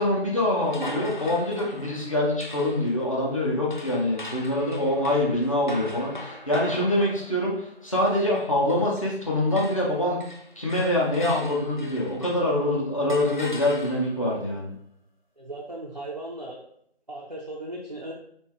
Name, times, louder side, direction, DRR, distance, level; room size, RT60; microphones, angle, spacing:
voice 1, 0.0-10.2 10.6-14.7, left 1 dB, 30° left, -5 dB, 0.9 m, -25 dB
sound 1, 0.6-9.2 9.5-12.6 13.1-14.3, left 1 dB, 50° left, 0.4 m, -41 dB
voice 2, 15.4-16.6 17.1-18.1, right 1 dB, 40° right, -4 dB, 0.4 m, -37 dB
3.7 x 2.7 x 3.4 m, 0.71 s
figure-of-eight pair, 175°, 32 cm